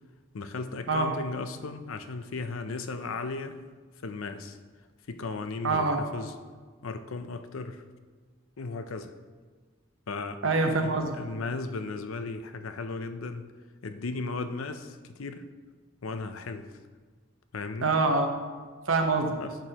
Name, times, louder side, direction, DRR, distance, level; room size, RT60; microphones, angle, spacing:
voice 1, 0.3-3.6 4.0-4.6 5.1-6.3 6.8-7.8 8.6-9.1 10.1-10.4 10.8-13.4 13.8-15.4 16.0-16.7 17.5-17.9 19.4-19.6, left 3 dB, 90° left, 9 dB, 0.6 m, -36 dB
voice 2, 5.6-6.0 10.4-11.1 17.8-18.3 18.9-19.4, right 3 dB, 75° right, 3 dB, 1.0 m, -25 dB
10.5 x 6.9 x 2.9 m, 1.5 s
head